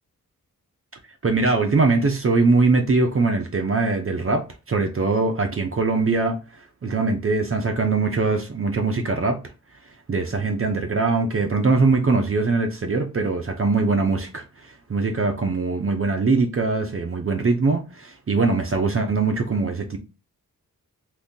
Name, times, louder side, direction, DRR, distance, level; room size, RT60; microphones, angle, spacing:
voice 1, 1.2-6.4 6.8-9.4 10.1-20.0, right 3 dB, 40° right, 0.6 m, -22 dB
3.7 x 2.7 x 2.6 m
wide cardioid pair, 165°, 35 cm